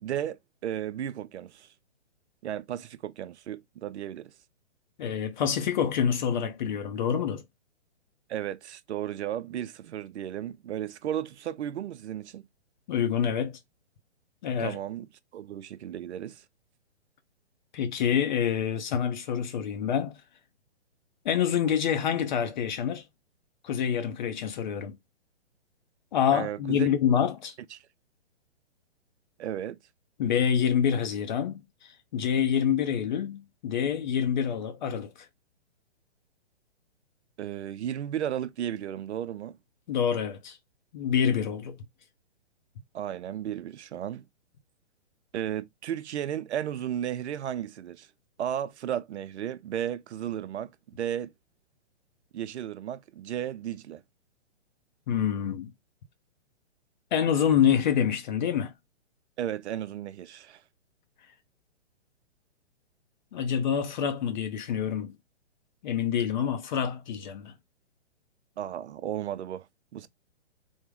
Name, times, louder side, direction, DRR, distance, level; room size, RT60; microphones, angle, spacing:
voice 1, 0.0-1.7 2.4-4.3 8.3-12.5 14.6-15.1 15.3-16.4 26.3-26.9 27.7-27.8 29.4-29.8 37.4-39.6 42.9-44.3 45.3-48.1 48.4-51.3 52.3-54.0 59.4-60.6 68.6-69.7 69.9-70.1, right 10 dB, 75° right, 0.5 m, -34 dB
voice 2, 5.0-7.4 12.9-13.6 14.4-14.8 17.7-20.2 21.2-23.0 23.6-25.0 26.1-27.6 30.2-35.3 39.9-40.6 40.9-41.8 55.1-55.7 57.1-58.7 63.3-65.2 65.8-67.5, left 8 dB, 40° left, 0.6 m, -27 dB
3.6 x 2.1 x 3.4 m
hypercardioid pair, 140°, 35 cm